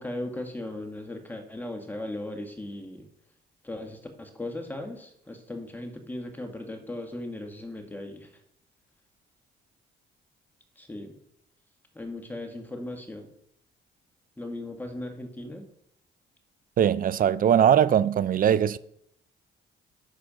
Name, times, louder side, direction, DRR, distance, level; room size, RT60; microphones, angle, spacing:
voice 1, 0.0-3.1 3.6-8.3 10.8-11.1 12.0-13.3 14.4-15.6, left 1 dB, 10° left, 1.7 m, -37 dB
voice 2, 16.8-18.8, right 9 dB, 45° right, 0.4 m, -21 dB
11.5 x 4.4 x 5.1 m
cardioid pair, 90°, 20 cm